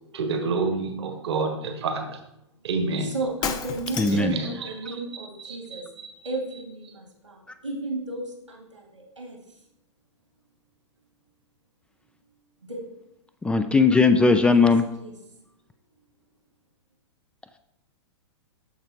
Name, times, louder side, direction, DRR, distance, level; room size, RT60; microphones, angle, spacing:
voice 1, 0.1-2.2 2.6-3.1 4.1-6.1, right 3 dB, 60° right, 5 dB, 1.3 m, -29 dB
voice 2, 3.0-5.8 6.2-7.4 7.6-9.4 12.7-12.8 14.5-14.7 15.0-15.1, right 2 dB, 85° right, 0 dB, 2.4 m, -34 dB
Shatter, 3.4-4.4, left 7 dB, 25° left, 0.7 m, -31 dB
voice 3, 4.0-4.4 13.4-14.8, left 4 dB, 5° left, 9 dB, 0.3 m, -18 dB
13.5 x 4.8 x 3.0 m, 0.84 s
figure-of-eight pair, 105°, 15 cm